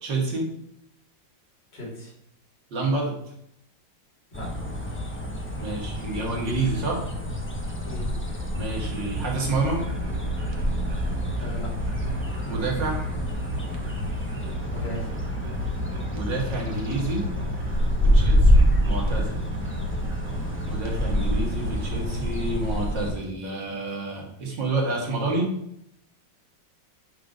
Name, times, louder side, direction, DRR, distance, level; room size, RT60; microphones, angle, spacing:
voice 1, 0.0-0.5 2.7-3.2 5.6-7.0 8.5-9.8 12.5-13.0 16.1-17.2 18.0-19.4 20.7-25.5, right 3 dB, 80° right, -2 dB, 2.5 m, -28 dB
voice 2, 1.7-2.1 4.3-4.6 7.9-8.1 11.4-11.8 14.7-15.2 18.1-18.4, equal, 70° left, -2 dB, 3.0 m, -37 dB
sound 1, 4.3-23.1, equal, 10° left, 0.9 m, -27 dB
sound 2, 8.7-22.1, equal, 55° right, 1.3 m, -34 dB
9.1 x 4.0 x 5.0 m, 0.77 s
omnidirectional pair, 2.0 m